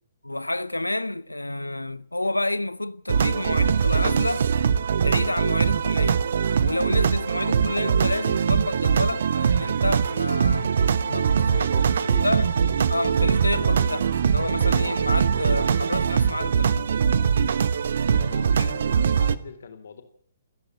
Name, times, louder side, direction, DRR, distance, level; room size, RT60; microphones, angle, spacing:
voice 1, 0.2-4.5 5.0-6.2 6.6-10.7 11.1-11.7 12.2-12.5 12.9-16.9 18.6-18.7, left 1 dB, 80° left, 0.9 m, -29 dB
sound 1, 3.1-19.4, right 7 dB, 55° right, 1.0 m, -22 dB
voice 2, 11.3-12.5 18.1-20.0, left 5 dB, 55° left, 3.9 m, -42 dB
29.5 x 10.5 x 9.0 m
figure-of-eight pair, 125°, 0 cm